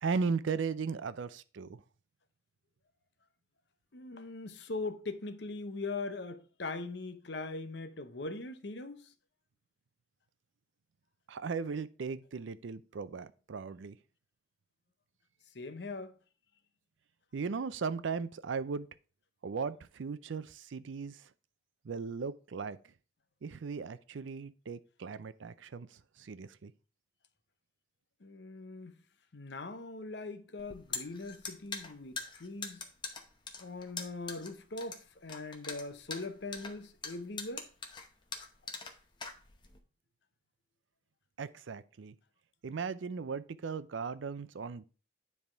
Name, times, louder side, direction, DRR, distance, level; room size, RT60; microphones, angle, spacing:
voice 1, 0.0-1.8 11.3-14.0 17.3-18.9 19.4-21.3 21.8-22.8 23.4-26.7 41.4-42.2 42.6-44.8, right 5 dB, 75° right, 0.5 m, -37 dB
voice 2, 3.9-9.1 15.5-16.2 28.2-29.0 29.3-32.8 33.6-37.7, left 3 dB, 60° left, 0.7 m, -41 dB
sound 1, 30.6-39.8, left 4 dB, 25° left, 0.8 m, -42 dB
9.7 x 3.5 x 4.5 m
head